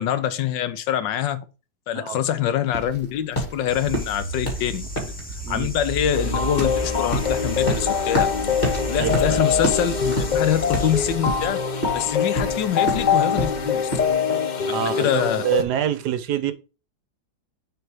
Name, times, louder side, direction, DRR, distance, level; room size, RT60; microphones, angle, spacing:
voice 1, 0.0-1.4 1.9-5.1 5.5-8.3 8.8-13.9 14.7-15.4, left 10 dB, 85° left, 1.4 m, -25 dB
sound 1, 2.7-14.1, equal, 30° left, 2.4 m, -29 dB
sound 2, 3.7-11.2, right 3 dB, 5° left, 1.0 m, -32 dB
voice 2, 5.2-5.7 9.0-9.4 14.7-16.5, right 10 dB, 70° right, 1.2 m, -26 dB
sound 3, 6.1-15.6, left 6 dB, 65° left, 0.4 m, -24 dB
6.8 x 3.9 x 4.7 m
omnidirectional pair, 1.9 m